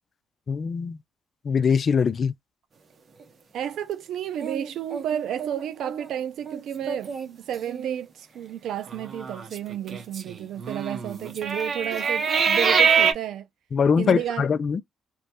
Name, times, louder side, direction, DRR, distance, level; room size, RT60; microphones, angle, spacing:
voice 1, 0.5-1.0 1.4-2.3 13.7-14.8, left 6 dB, 45° left, 0.4 m, -22 dB
voice 2, 3.5-13.5 14.0-14.5, right 10 dB, 75° right, 0.4 m, -32 dB
sound 1, 4.4-6.1 6.5-6.6 6.9-7.3 7.7-8.0 8.9-13.1, right 6 dB, 45° right, 0.9 m, -25 dB
3.0 x 2.3 x 2.8 m
cardioid pair, 90°, 0 cm